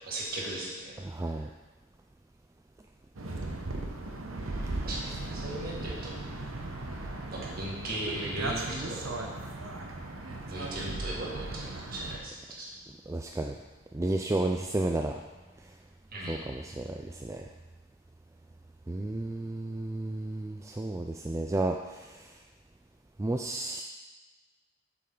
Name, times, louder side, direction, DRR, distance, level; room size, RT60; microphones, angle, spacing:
voice 1, 0.1-1.0 4.8-6.1 7.3-9.3 10.5-12.7 16.1-16.5, right 1 dB, 45° right, -4 dB, 2.0 m, -37 dB
voice 2, 1.0-1.5 13.1-13.5 13.9-15.1 16.3-17.5 18.9-22.3 23.2-23.8, right 2 dB, 15° right, 2 dB, 0.3 m, -32 dB
sound 1, 3.2-12.2, right 2 dB, 80° right, 1.0 m, -37 dB
8.4 x 6.9 x 3.8 m, 1.2 s
head